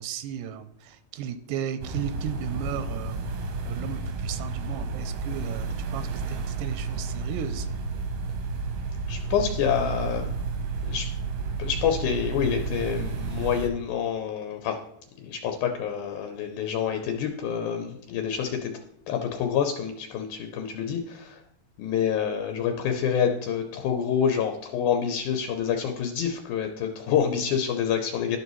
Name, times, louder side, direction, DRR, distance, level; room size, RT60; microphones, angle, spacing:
voice 1, 0.0-7.7, right 9 dB, 90° right, 11 dB, 2.1 m, -35 dB
sound 1, 1.8-13.7, right 4 dB, 70° right, 1.6 m, -31 dB
voice 2, 9.1-10.3 10.8-11.1 11.6-14.8 15.2-18.7 19.1-21.4 21.8-28.4, left 8 dB, 80° left, 5 dB, 2.1 m, -27 dB
12.0 x 5.4 x 3.0 m, 0.76 s
omnidirectional pair, 3.5 m